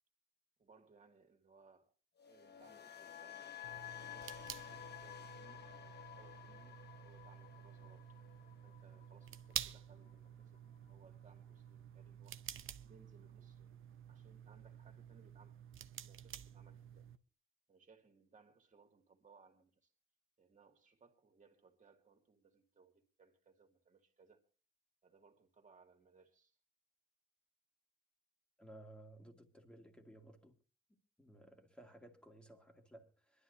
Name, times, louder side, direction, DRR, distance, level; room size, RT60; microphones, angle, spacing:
voice 1, 0.6-1.9 2.3-3.7 4.0-8.2 8.6-10.6 10.9-12.4 12.8-13.8 14.1-15.6 16.0-17.1 17.7-19.9 20.4-24.4 25.0-26.6, right 4 dB, 40° right, 2.2 m, -67 dB
sound 1, 2.2-10.3 10.5-10.9, left 10 dB, 55° left, 1.1 m, -53 dB
sound 2, 3.6-17.2, right 10 dB, 85° right, 0.7 m, -50 dB
voice 2, 28.6-30.6 31.2-33.4, right 1 dB, 5° left, 2.0 m, -58 dB
25.5 x 11.5 x 2.6 m
wide cardioid pair, 115°, 20 cm